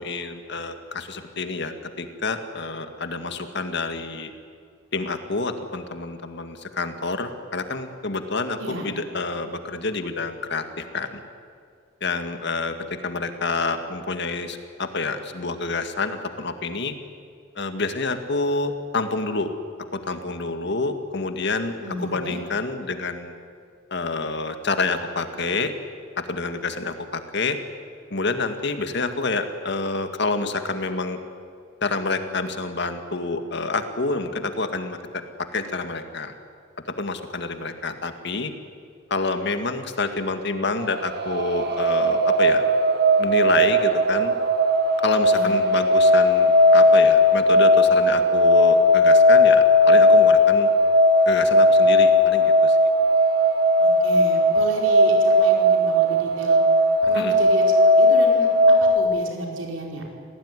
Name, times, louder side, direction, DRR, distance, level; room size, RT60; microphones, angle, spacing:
voice 1, 0.0-4.3 4.9-11.2 12.0-12.7 13.0-16.9 17.6-19.5 19.8-21.7 22.0-23.3 23.9-25.7 26.2-27.6 28.1-31.2 31.8-36.3 37.0-38.5 39.1-42.6 43.2-44.3 45.0-50.7 51.3-52.8 57.1-57.4, left 3 dB, 60° left, 7 dB, 2.0 m, -28 dB
voice 2, 21.8-22.4 45.3-45.5 53.8-56.6 57.0-60.0, right 1 dB, 70° right, 1 dB, 4.9 m, -32 dB
sound 1, 40.8-59.0, left 1 dB, 55° right, 1.7 m, -17 dB
28.0 x 18.0 x 9.9 m, 2.3 s
head